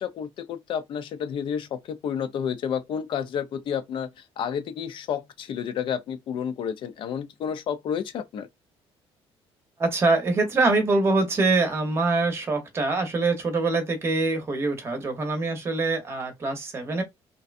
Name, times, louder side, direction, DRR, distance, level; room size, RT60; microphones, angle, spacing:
voice 1, 0.0-8.5, left 8 dB, 50° left, 0.5 m, -30 dB
voice 2, 9.8-17.0, right 3 dB, 25° right, 0.8 m, -24 dB
2.6 x 2.2 x 2.4 m
cardioid pair, 175°, 11 cm